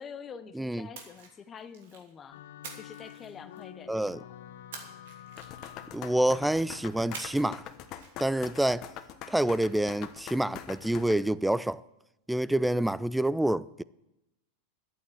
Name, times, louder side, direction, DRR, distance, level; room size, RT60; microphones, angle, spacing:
voice 1, 0.0-2.4 2.8-4.3, left 7 dB, 25° left, 0.7 m, -46 dB
voice 2, 0.6-0.9 3.9-4.2 5.9-7.6 8.2-8.9 9.3-11.8 12.3-13.8, right 1 dB, 5° right, 0.4 m, -27 dB
Splash splatter, 0.9-2.1 2.6-3.8 4.7-6.0 7.1-7.6 7.9-8.1, right 5 dB, 75° right, 2.9 m, -46 dB
sound 1, 2.3-8.0, left 11 dB, 75° left, 0.8 m, -49 dB
sound 2, 5.4-11.2, left 10 dB, 45° left, 1.1 m, -43 dB
11.5 x 8.6 x 7.9 m
hypercardioid pair, 115°, 0 cm